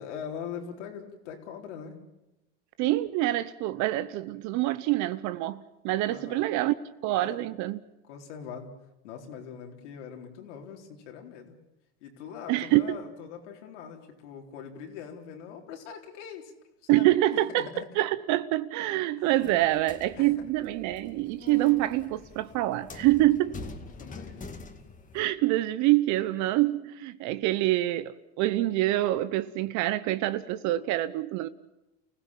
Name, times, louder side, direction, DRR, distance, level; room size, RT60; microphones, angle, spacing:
voice 1, 0.0-2.0 6.0-6.5 7.2-7.4 8.1-8.7 9.0-11.6 12.0-16.5 16.8-17.9 19.2-19.5 20.2-20.3 23.9-24.5, left 7 dB, 85° left, 4.2 m, -42 dB
voice 2, 2.8-6.7 7.0-7.8 12.5-13.0 16.9-17.7 18.0-23.6 25.1-31.5, right 16 dB, 55° right, 0.9 m, -26 dB
sound 1, 19.4-25.2, left 3 dB, 20° left, 2.3 m, -45 dB
30.0 x 16.5 x 7.4 m
supercardioid pair, 115°, 34 cm